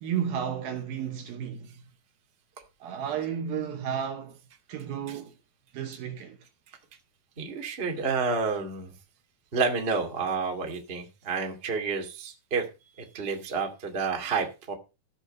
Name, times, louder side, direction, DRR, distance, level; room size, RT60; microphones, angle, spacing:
voice 1, 0.0-1.7 2.8-4.4 4.7-5.3 5.7-6.4, right 8 dB, 70° right, 2.6 m, -32 dB
voice 2, 7.4-8.9 9.5-12.6 13.0-14.7, right 5 dB, 20° right, 1.6 m, -30 dB
16.0 x 5.7 x 5.4 m
omnidirectional pair, 5.0 m